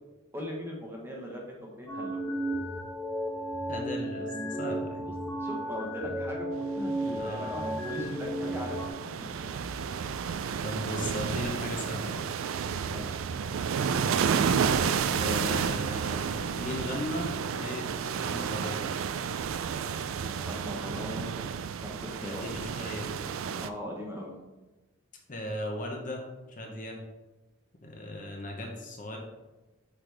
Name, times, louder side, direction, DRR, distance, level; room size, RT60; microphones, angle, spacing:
voice 1, 0.3-2.2 5.0-5.1 5.4-8.8 9.4-9.5 12.9-13.2 20.5-21.4 21.8-22.4 23.6-24.3, equal, 10° right, -2 dB, 1.0 m, -39 dB
sound 1, 1.9-8.9, right 1 dB, 15° left, 1.5 m, -34 dB
voice 2, 3.7-5.0 7.0-7.6 10.6-12.3 15.0-18.9 22.2-23.2 25.3-27.0 27.8-29.2, left 1 dB, 40° left, 1 dB, 0.9 m, -37 dB
sound 2, 6.8-23.7, right 6 dB, 90° right, 0.4 m, -31 dB
sound 3, 9.2-12.0, right 1 dB, 85° left, 1.8 m, -49 dB
7.9 x 4.0 x 3.3 m, 1.1 s
head